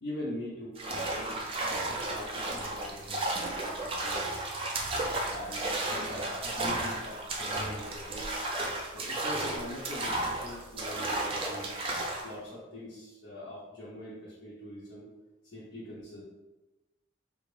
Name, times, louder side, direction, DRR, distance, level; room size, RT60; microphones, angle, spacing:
voice 1, 0.0-4.5 5.2-8.3 8.9-11.7 12.2-15.1 15.4-16.2, left 1 dB, 80° left, -8 dB, 0.8 m, -43 dB
sound 1, 0.8-12.3, right 2 dB, 30° right, 0.4 m, -33 dB
3.3 x 2.4 x 3.2 m, 1.1 s
head